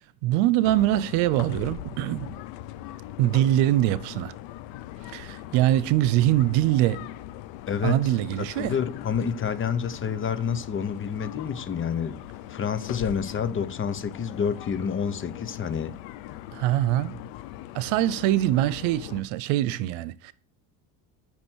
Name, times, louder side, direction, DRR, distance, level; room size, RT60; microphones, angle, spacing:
voice 1, 0.2-2.4 3.2-4.3 5.1-7.1 7.8-8.7 16.5-17.2 17.7-20.3, right 14 dB, 90° right, 0.9 m, -23 dB
sound 1, 0.6-19.2, left 13 dB, 80° left, 0.8 m, -40 dB
voice 2, 7.7-8.0 8.4-12.2 12.5-15.9, left 7 dB, 30° left, 1.0 m, -28 dB
8.9 x 6.1 x 6.3 m
cardioid pair, 130°, 43 cm